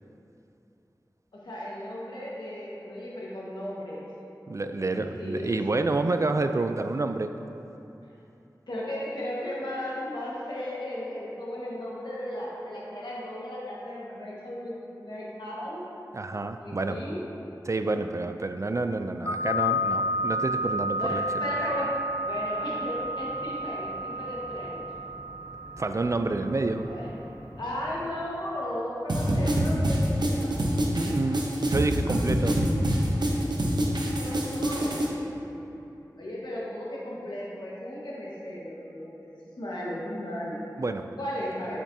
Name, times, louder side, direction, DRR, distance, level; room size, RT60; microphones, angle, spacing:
voice 1, 1.3-4.1 4.8-5.6 8.7-15.8 16.6-17.2 21.0-24.8 26.8-27.1 27.6-30.7 32.0-32.7 34.1-35.1 35.5-35.7 36.2-40.6 41.2-41.8, left 1 dB, 85° left, -6 dB, 1.5 m, -35 dB
voice 2, 4.5-7.3 16.1-17.0 17.7-21.2 25.8-26.9 31.0-32.6 40.8-41.1, right 3 dB, 45° right, 8 dB, 0.3 m, -28 dB
sound 1, 19.3-28.1, left 1 dB, 40° left, 0.7 m, -31 dB
sound 2, 29.1-35.1, right 1 dB, 80° right, 0.8 m, -25 dB
7.4 x 7.1 x 2.7 m, 2.9 s
wide cardioid pair, 50°, 7 cm